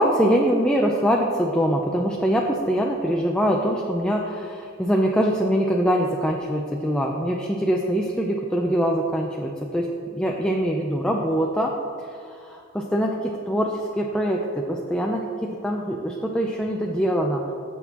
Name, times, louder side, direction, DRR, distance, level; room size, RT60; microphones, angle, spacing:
voice 1, 0.0-11.7 12.0-17.4, equal, 5° left, -1 dB, 0.5 m, -23 dB
16.0 x 6.3 x 2.9 m, 2.5 s
head